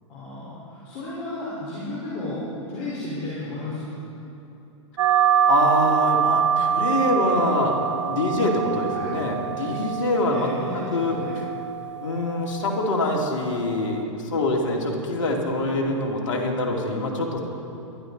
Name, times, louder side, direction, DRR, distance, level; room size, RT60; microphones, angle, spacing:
voice 1, 0.1-2.4 2.7-3.9 8.8-9.2 10.3-11.4, left 2 dB, 40° left, -7 dB, 4.3 m, -33 dB
sound 1, 5.0-14.0, right 8 dB, 70° right, 0.7 m, -25 dB
voice 2, 5.5-10.5 10.9-11.4 12.0-17.4, left 2 dB, 75° left, 0 dB, 2.6 m, -25 dB
22.5 x 12.5 x 4.0 m, 2.9 s
hypercardioid pair, 120°, 16 cm